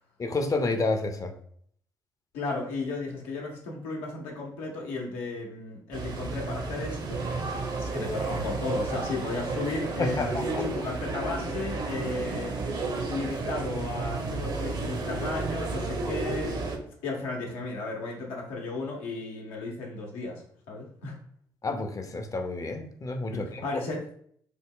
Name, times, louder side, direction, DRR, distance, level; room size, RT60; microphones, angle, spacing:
voice 1, 0.2-1.3 10.0-10.6 21.6-23.7, left 3 dB, 35° left, 6 dB, 0.6 m, -30 dB
voice 2, 2.3-7.2 7.7-12.6 13.1-16.7 17.0-20.4 20.7-21.2 23.3-24.0, left 3 dB, 80° left, -1 dB, 0.8 m, -34 dB
sound 1, 5.9-16.8, right 3 dB, 45° right, 0.7 m, -32 dB
3.5 x 2.1 x 3.6 m, 0.63 s
hypercardioid pair, 45°, 10 cm